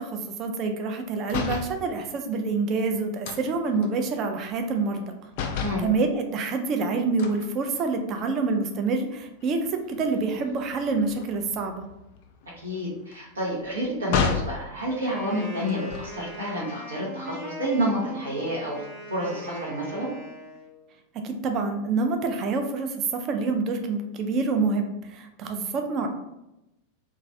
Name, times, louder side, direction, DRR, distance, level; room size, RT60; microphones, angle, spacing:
voice 1, 0.0-5.0 5.8-11.8 21.2-26.1, right 4 dB, 35° right, 5 dB, 0.4 m, -27 dB
sound 1, 1.2-1.8 3.3-5.1 5.3-5.9 7.2-8.2 8.7-8.9 9.2-14.6 15.7-16.4, left 6 dB, 50° left, 0.3 m, -33 dB
voice 2, 12.6-18.8 19.1-20.1, equal, 75° right, -6 dB, 0.8 m, -29 dB
Wind instrument woodwind instrument, 14.9-20.7, equal, 15° right, 1.0 m, -40 dB
3.0 x 2.4 x 2.6 m, 0.90 s
figure-of-eight pair, 90°, 0 cm